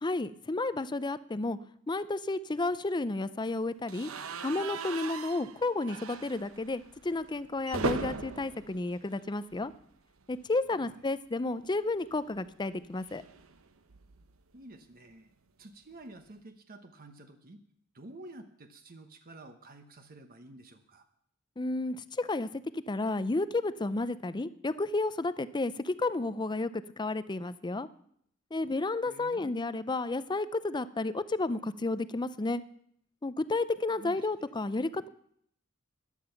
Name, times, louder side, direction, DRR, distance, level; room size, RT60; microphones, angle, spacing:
voice 1, 0.0-1.6 1.9-4.1 4.4-9.7 10.3-13.2 21.6-22.5 22.7-26.7 27.0-27.9 28.5-32.6 33.2-35.1, left 2 dB, 20° left, 14 dB, 0.5 m, -32 dB
sound 1, 3.9-9.9 10.2-10.4 10.7-10.8 12.0-14.4, right 4 dB, 70° right, 0.9 m, -40 dB
voice 2, 14.5-15.3 15.6-17.6 17.9-21.1 29.0-29.5 34.0-34.3, right 2 dB, 45° right, 7 dB, 1.0 m, -50 dB
14.5 x 10.5 x 5.8 m, 0.67 s
head